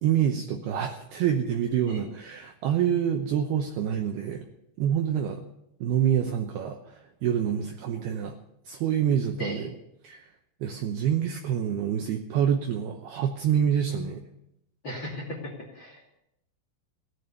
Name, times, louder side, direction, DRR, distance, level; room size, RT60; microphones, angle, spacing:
voice 1, 0.0-4.5 4.8-5.4 5.8-8.4 8.7-9.7 10.0-10.3 10.6-14.2, right 9 dB, 75° right, 4 dB, 2.4 m, -27 dB
voice 2, 14.8-16.0, left 1 dB, 35° left, 0 dB, 2.2 m, -36 dB
17.0 x 11.5 x 6.7 m, 0.79 s
omnidirectional pair, 5.7 m